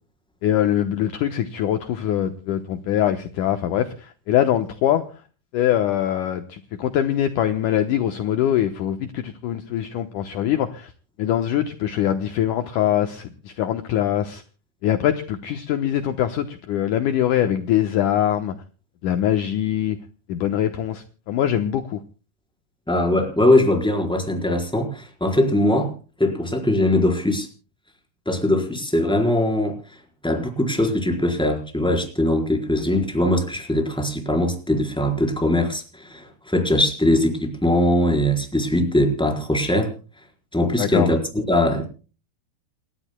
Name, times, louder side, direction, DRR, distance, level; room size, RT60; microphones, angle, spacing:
voice 1, 0.4-5.0 5.5-10.9 11.2-14.4 14.8-18.5 19.0-20.0 20.3-22.0 40.8-41.1, left 11 dB, 75° left, 7 dB, 2.0 m, -23 dB
voice 2, 22.9-25.9 26.2-27.5 28.3-29.8 30.2-39.9 40.5-41.9, left 1 dB, ahead, 2 dB, 3.7 m, -21 dB
29.5 x 13.0 x 2.2 m, 0.36 s
omnidirectional pair, 4.7 m